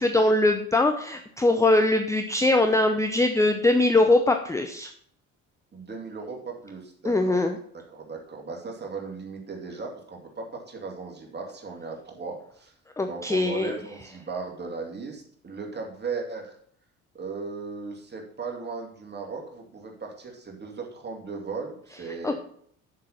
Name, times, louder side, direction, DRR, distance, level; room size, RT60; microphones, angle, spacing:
voice 1, 0.0-4.9 7.0-7.6 13.0-13.7 22.2-22.3, left 2 dB, 5° left, 6 dB, 0.7 m, -22 dB
voice 2, 5.7-7.4 7.9-12.7 13.0-16.5 17.1-22.3, right 4 dB, 25° right, 1 dB, 2.6 m, -37 dB
7.4 x 6.8 x 5.8 m, 0.63 s
figure-of-eight pair, 55°, 41 cm